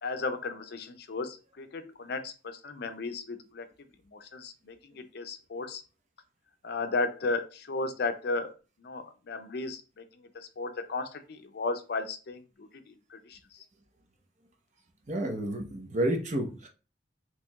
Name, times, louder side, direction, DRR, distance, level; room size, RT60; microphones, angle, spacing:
voice 1, 0.0-3.7 4.1-5.8 6.6-8.5 8.8-10.0 10.3-13.4, left 3 dB, 60° left, 8 dB, 0.5 m, -35 dB
voice 2, 15.1-16.7, right 1 dB, 40° right, 3 dB, 0.7 m, -30 dB
4.5 x 2.9 x 2.3 m, 0.33 s
head